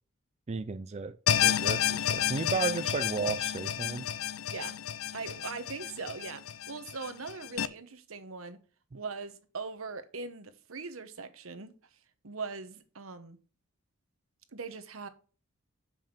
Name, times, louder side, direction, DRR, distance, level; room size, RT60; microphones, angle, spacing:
voice 1, 0.5-1.2 1.4-4.1, right 4 dB, 30° right, 0.4 m, -33 dB
sound 1, 1.3-7.7, left 9 dB, 75° left, 0.5 m, -30 dB
voice 2, 5.1-8.6 8.9-11.7 12.2-13.4 14.5-15.1, right 4 dB, 75° right, 1.0 m, -41 dB
6.9 x 5.6 x 5.9 m
head